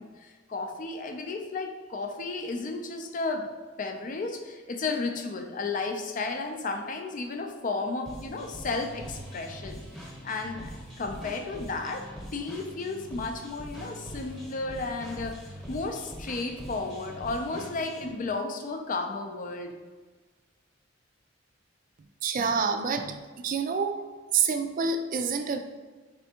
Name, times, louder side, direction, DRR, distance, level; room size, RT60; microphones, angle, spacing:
voice 1, 0.0-3.5 3.8-9.8 10.2-19.7, left 3 dB, 45° left, 5 dB, 0.4 m, -33 dB
sound 1, 8.1-18.2, right 1 dB, 5° left, 1.0 m, -43 dB
voice 2, 22.2-24.0 24.3-25.6, right 5 dB, 45° right, 7 dB, 0.3 m, -27 dB
4.3 x 3.4 x 2.8 m, 1.4 s
head